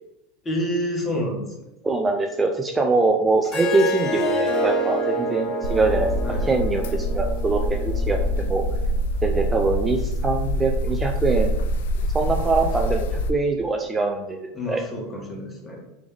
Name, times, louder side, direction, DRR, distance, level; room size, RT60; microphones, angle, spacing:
voice 1, 0.4-1.6 6.2-7.0 14.5-15.8, equal, 20° left, -2 dB, 1.4 m, -29 dB
voice 2, 1.8-8.6 9.2-11.5 12.1-14.8, right 3 dB, 15° right, 2 dB, 0.4 m, -23 dB
Harp, 3.4-8.6, right 1 dB, 40° left, 1.1 m, -27 dB
sound 1, 5.6-13.3, equal, 80° left, 0.4 m, -25 dB
3.5 x 3.5 x 3.3 m, 0.88 s
supercardioid pair, 115°, 0 cm